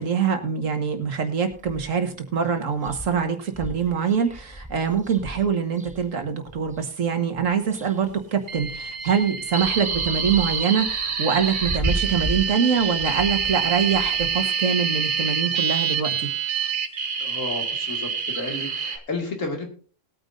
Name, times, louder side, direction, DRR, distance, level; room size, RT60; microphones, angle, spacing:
voice 1, 0.0-16.1, right 6 dB, 85° right, 6 dB, 1.8 m, -24 dB
sound 1, 1.5-2.1 2.5-2.6 2.8-6.8 7.4-8.2 8.5-14.4, right 1 dB, 10° right, 0.4 m, -35 dB
sound 2, 8.5-19.0, right 6 dB, 45° right, 1.0 m, -26 dB
voice 2, 17.2-19.7, left 2 dB, 80° left, 2 dB, 2.6 m, -32 dB
20.0 x 9.2 x 2.6 m, 0.41 s
omnidirectional pair, 1.3 m